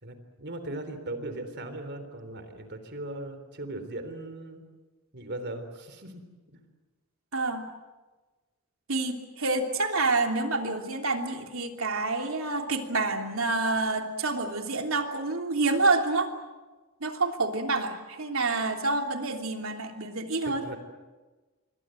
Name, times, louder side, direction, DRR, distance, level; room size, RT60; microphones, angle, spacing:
voice 1, 0.0-4.6 5.1-6.2 6.5-6.6 20.5-20.8, right 1 dB, 55° right, 9 dB, 3.6 m, -38 dB
voice 2, 7.3-7.7 8.9-16.3 17.0-20.6, right 3 dB, 70° right, 4 dB, 3.2 m, -28 dB
28.0 x 23.5 x 7.8 m, 1.3 s
head